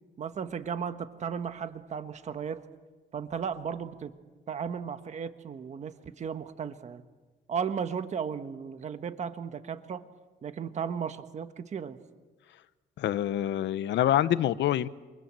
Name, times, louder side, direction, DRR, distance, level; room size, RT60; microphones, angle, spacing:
voice 1, 0.2-2.6 3.1-4.1 4.5-7.0 7.5-10.0 10.4-12.0, right 7 dB, 40° right, 9 dB, 1.4 m, -35 dB
voice 2, 13.0-14.9, left 11 dB, 80° left, 15 dB, 0.9 m, -26 dB
28.0 x 27.0 x 7.6 m, 1.3 s
cardioid pair, 180°, 18 cm